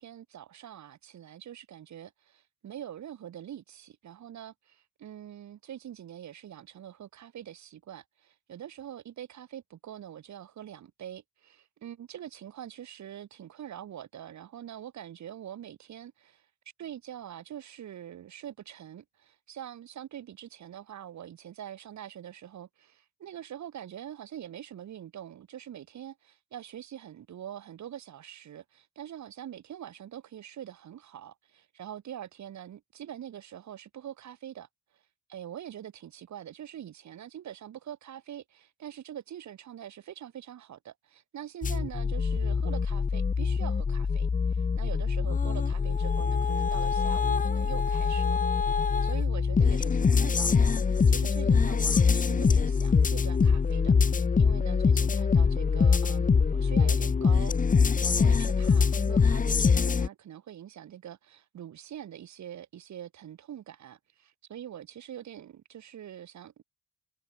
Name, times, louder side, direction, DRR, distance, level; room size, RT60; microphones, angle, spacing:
voice 1, 0.0-16.5 16.8-34.7 34.9-35.0 35.3-66.6, right 10 dB, 65° right, 6.3 m, -44 dB
sound 1, 41.6-60.1, left 5 dB, 25° left, 1.1 m, -24 dB
cardioid pair, 90°, 30 cm